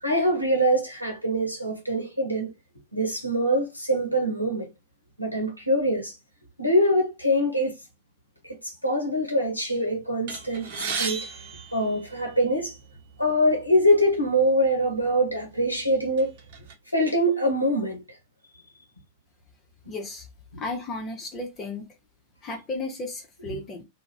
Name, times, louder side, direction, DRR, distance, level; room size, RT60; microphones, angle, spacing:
voice 1, 0.0-2.5 2.9-4.7 5.2-6.2 6.6-7.7 8.4-10.7 11.0-11.3 11.7-12.8 13.2-16.3 16.9-18.0, equal, 85° left, 0.6 m, -24 dB
sound 1, 10.3-12.6 13.4-13.6 13.9-14.1 14.9-15.1 15.6-16.7, right 5 dB, 50° right, 0.8 m, -34 dB
voice 2, 19.9-20.3 20.6-21.9 22.4-23.8, left 2 dB, 25° left, 0.6 m, -34 dB
2.3 x 2.1 x 3.2 m
figure-of-eight pair, 90°, 0 cm